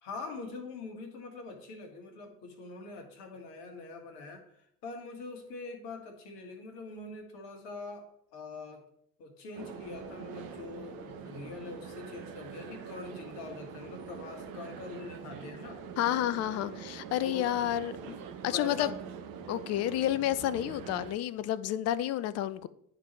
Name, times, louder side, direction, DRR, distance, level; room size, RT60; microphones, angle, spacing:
voice 1, 0.0-8.8 9.2-15.8 17.2-19.0, left 3 dB, 60° left, 1.7 m, -44 dB
sound 1, 9.6-21.2, right 6 dB, 50° right, 0.9 m, -44 dB
voice 2, 16.0-18.2 18.4-18.9 19.5-22.7, left 12 dB, 35° left, 0.4 m, -30 dB
11.5 x 4.0 x 3.1 m
figure-of-eight pair, 55°, 45 cm